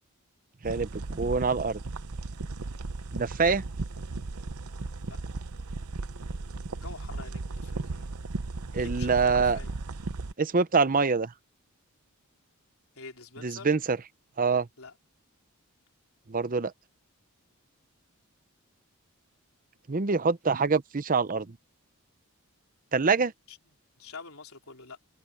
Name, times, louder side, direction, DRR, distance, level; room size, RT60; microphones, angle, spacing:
voice 1, 0.6-1.8 3.1-3.6 8.7-9.6 10.4-11.3 13.4-14.0 14.4-14.7 16.3-16.7 19.9-21.6 22.9-23.3, right 4 dB, 40° right, 0.7 m, -25 dB
sound 1, 0.6-10.3, right 3 dB, 80° right, 0.8 m, -36 dB
voice 2, 4.9-5.2 6.8-8.1 8.8-9.7 13.0-13.7 14.8-14.9 23.5-23.6 24.0-25.0, left 4 dB, 70° left, 4.0 m, -46 dB
head